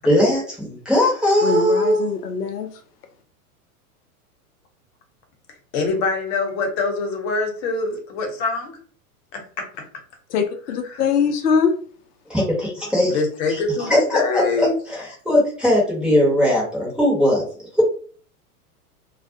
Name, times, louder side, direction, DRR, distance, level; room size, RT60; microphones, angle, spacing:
voice 1, 0.0-2.0 12.3-13.2 13.5-17.4 17.7-17.8, left 1 dB, ahead, 0.8 m, -19 dB
voice 2, 1.4-2.8 10.3-11.7, left 6 dB, 85° left, 0.6 m, -22 dB
voice 3, 5.7-8.8 9.3-9.6 10.9-11.0 13.1-14.7, left 3 dB, 45° left, 1.0 m, -24 dB
2.3 x 2.0 x 2.6 m
hypercardioid pair, 110°, 45 cm